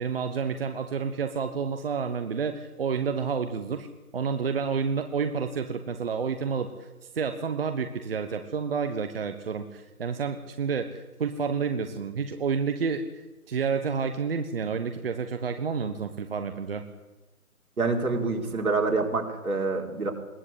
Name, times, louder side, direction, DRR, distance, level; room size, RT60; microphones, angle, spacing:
voice 1, 0.0-3.9 4.1-6.9 7.1-16.8, right 6 dB, 40° right, 7 dB, 1.4 m, -29 dB
voice 2, 17.8-20.1, right 3 dB, 75° right, 2 dB, 4.5 m, -26 dB
22.0 x 16.5 x 8.5 m, 1.1 s
figure-of-eight pair, 155°, 44 cm